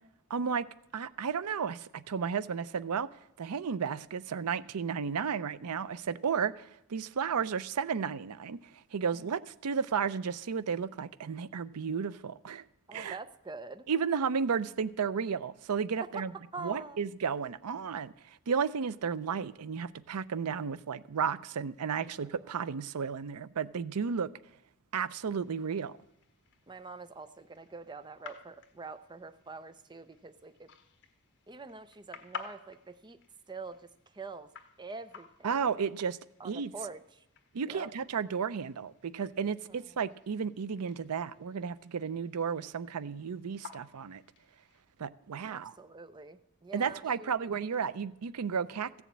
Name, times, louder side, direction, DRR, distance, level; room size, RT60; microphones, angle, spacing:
voice 1, 0.3-0.7 0.9-3.1 3.4-12.6 12.9-13.2 13.9-16.3 16.6-24.3 24.9-25.9 35.4-36.2 36.4-36.7 37.5-44.2 45.0-45.8 46.7-49.0, right 6 dB, 85° right, 0.5 m, -33 dB
voice 2, 12.9-13.9 16.1-16.2 16.5-17.0 22.0-22.2 22.4-22.5 26.7-30.7 31.5-33.2 33.5-34.5 34.8-35.7 36.4-37.2 37.7-37.9 39.7-39.8 45.5-47.3, right 3 dB, 20° right, 0.5 m, -45 dB
sound 1, 25.3-44.8, left 5 dB, 50° left, 1.4 m, -53 dB
15.0 x 7.1 x 8.5 m
head